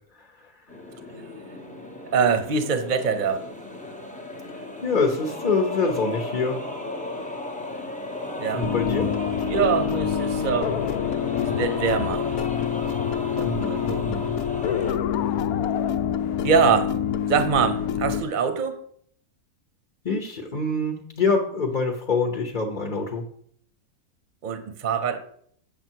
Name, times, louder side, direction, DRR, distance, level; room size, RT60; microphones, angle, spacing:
voice 1, 0.1-0.6 4.5-6.9 8.5-9.1 13.4-14.3 20.0-23.3, left 3 dB, 35° left, 1 dB, 1.0 m, -26 dB
sound 1, 0.7-14.9, left 1 dB, 5° left, 0.7 m, -34 dB
voice 2, 2.1-3.5 8.4-8.8 9.5-10.8 11.4-12.3 13.4-14.1 16.4-17.0 17.3-18.8 24.4-25.2, right 6 dB, 40° right, 9 dB, 0.9 m, -24 dB
sound 2, 8.6-18.2, left 9 dB, 80° left, 1.0 m, -26 dB
8.6 x 7.2 x 4.6 m, 0.65 s
omnidirectional pair, 1.6 m